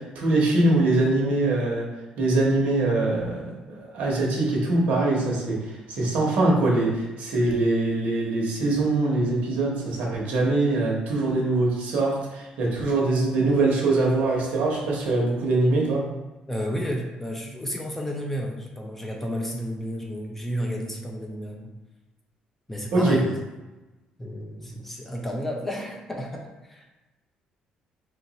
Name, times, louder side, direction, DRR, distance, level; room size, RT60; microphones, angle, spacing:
voice 1, 0.0-1.9 2.2-16.0 22.9-23.2, right 2 dB, 65° right, -2 dB, 1.0 m, -23 dB
voice 2, 16.5-21.7 22.7-23.4 24.2-26.9, equal, 10° left, 1 dB, 0.4 m, -31 dB
2.8 x 2.5 x 4.0 m, 1.1 s
cardioid pair, 150°, 3 cm